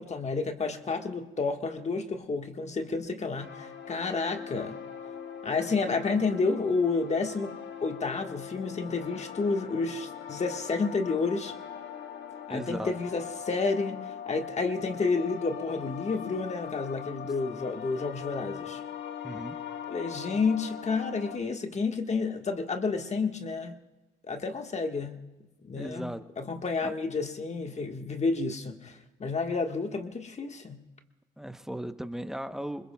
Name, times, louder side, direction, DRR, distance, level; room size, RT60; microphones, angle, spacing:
voice 1, 0.0-4.8 5.4-7.5 7.8-11.5 12.5-18.8 19.9-23.8 24.2-25.2 25.6-30.8, left 4 dB, 35° left, 5 dB, 1.4 m, -30 dB
sound 1, 3.4-21.4, left 8 dB, 70° left, 1.4 m, -41 dB
voice 2, 12.5-12.9 19.2-19.6 25.8-26.2 26.8-26.9 31.4-32.9, right 1 dB, ahead, 9 dB, 0.8 m, -36 dB
26.0 x 21.0 x 2.3 m, 1.1 s
cardioid pair, 90°, 20 cm